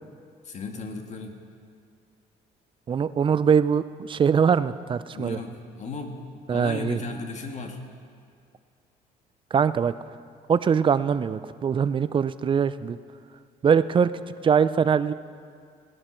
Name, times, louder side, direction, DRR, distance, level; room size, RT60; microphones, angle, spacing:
voice 1, 0.4-1.4 5.1-7.8, left 3 dB, 45° left, 4 dB, 1.6 m, -36 dB
voice 2, 2.9-5.4 6.5-7.0 9.5-9.9 10.5-13.0 13.6-14.1 14.4-15.1, right 7 dB, 30° right, 14 dB, 0.4 m, -22 dB
18.0 x 11.0 x 4.4 m, 2.2 s
cardioid pair, 110°, 17 cm